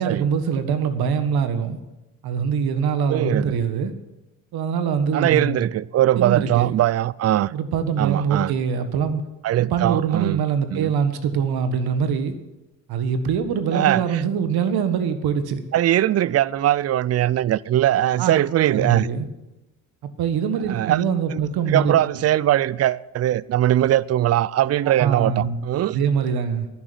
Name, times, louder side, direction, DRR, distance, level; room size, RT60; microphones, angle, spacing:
voice 1, 0.0-1.8 2.2-3.9 4.5-5.7 6.2-6.8 7.5-9.2 9.6-12.4 12.9-15.6 18.2-18.3 18.7-19.3 20.2-22.0 25.0-25.6 25.9-26.7, right 7 dB, 65° right, 1.6 m, -23 dB
voice 2, 3.1-3.6 5.1-7.5 8.0-8.5 9.4-10.4 10.7-10.9 13.7-14.0 15.7-19.1 20.7-21.0 21.3-21.4 21.7-26.0, right 13 dB, 40° right, 0.5 m, -20 dB
11.0 x 10.0 x 7.9 m
supercardioid pair, 75°, 41 cm